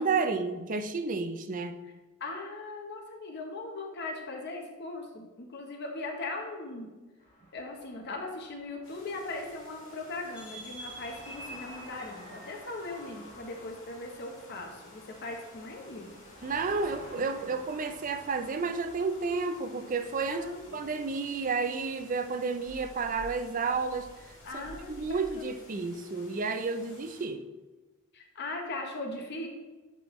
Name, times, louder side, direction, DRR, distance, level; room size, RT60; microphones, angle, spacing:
voice 1, 0.0-1.8 16.4-20.5 20.7-24.1 24.5-27.4, right 4 dB, 40° right, 8 dB, 0.4 m, -31 dB
voice 2, 2.2-6.9 7.5-16.1 16.9-17.3 20.3-21.0 24.4-25.5 28.1-29.5, left 2 dB, 50° left, 2 dB, 0.8 m, -39 dB
sound 1, 7.2-25.4, left 1 dB, 35° left, 1.7 m, -53 dB
sound 2, 8.8-27.3, left 2 dB, 75° left, 1.9 m, -55 dB
sound 3, 10.3-26.0, right 1 dB, 5° right, 1.3 m, -53 dB
10.5 x 3.5 x 3.1 m, 1.2 s
head